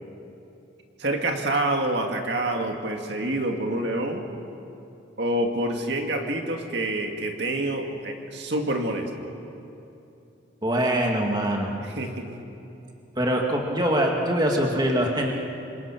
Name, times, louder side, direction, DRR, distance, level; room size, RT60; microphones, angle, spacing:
voice 1, 1.0-4.2 5.2-9.1 11.8-12.3, right 1 dB, 60° right, 3 dB, 2.1 m, -27 dB
voice 2, 10.6-11.7 13.2-15.3, right 1 dB, 20° right, 1 dB, 2.2 m, -23 dB
28.0 x 26.0 x 6.0 m, 2.8 s
head